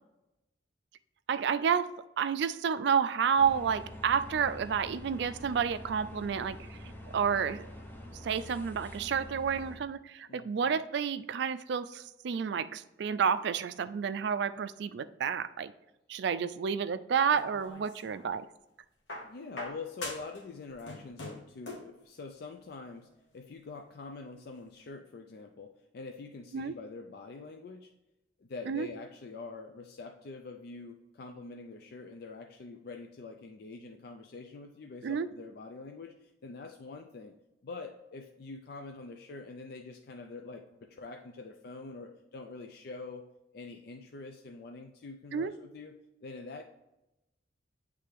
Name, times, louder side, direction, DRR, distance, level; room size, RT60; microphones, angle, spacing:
voice 1, 1.3-1.9 2.2-6.8 7.1-7.7 8.1-15.7 16.1-18.5 26.5-26.7 28.7-28.9 35.0-35.3 45.3-45.5, right 7 dB, 65° right, 13 dB, 0.3 m, -30 dB
sound 1, 3.4-9.8, left 1 dB, 10° left, 0.7 m, -46 dB
voice 2, 10.3-10.7 19.2-27.9 28.4-37.3 37.6-43.2 43.5-45.9 46.2-46.6, left 3 dB, 55° left, 4 dB, 0.4 m, -45 dB
sound 2, 17.3-18.3 19.1-20.4 20.7-22.0 23.0-23.1, left 2 dB, 75° left, 1.2 m, -43 dB
8.2 x 3.3 x 3.5 m, 0.93 s
head